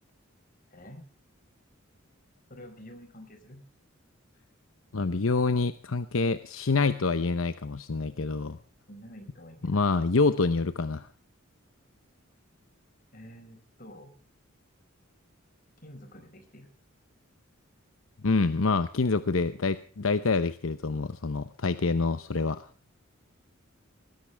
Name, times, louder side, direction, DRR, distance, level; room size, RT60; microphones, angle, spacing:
voice 1, 0.7-1.0 2.5-3.6 8.9-9.9 13.1-14.1 15.8-16.7, equal, 45° left, 7 dB, 5.0 m, -48 dB
voice 2, 4.9-8.6 9.6-11.1 18.2-22.6, left 3 dB, 75° left, 12 dB, 0.8 m, -26 dB
20.0 x 16.0 x 3.4 m, 0.43 s
head